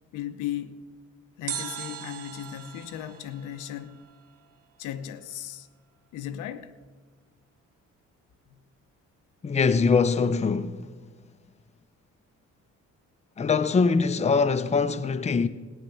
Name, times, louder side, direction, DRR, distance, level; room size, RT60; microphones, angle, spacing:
voice 1, 0.1-0.8 1.4-4.1 4.8-5.7 6.1-6.8, left 11 dB, 90° left, 0.8 m, -36 dB
sound 1, 1.5-4.6 4.8-4.9, right 8 dB, 55° right, 0.8 m, -39 dB
voice 2, 9.4-10.9 13.4-15.5, left 5 dB, 20° left, 0.6 m, -23 dB
14.5 x 9.8 x 7.0 m
cardioid pair, 90°, 30 cm